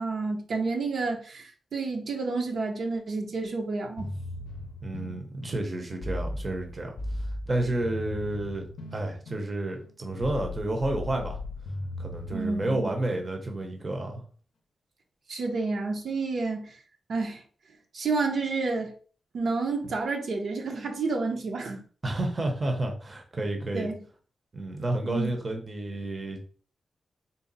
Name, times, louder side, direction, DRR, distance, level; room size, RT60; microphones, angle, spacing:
voice 1, 0.0-4.1 12.3-12.9 15.3-16.8 17.1-17.4 17.9-18.9 19.3-21.8 23.7-24.0 25.0-25.3, right 3 dB, 70° right, 0.7 m, -30 dB
sound 1, 4.0-13.8, left 1 dB, 85° left, 0.5 m, -38 dB
voice 2, 4.8-11.4 12.0-14.2 22.0-23.9 24.5-26.4, right 1 dB, 30° right, 0.7 m, -31 dB
3.9 x 2.0 x 3.9 m
wide cardioid pair, 135°, 0 cm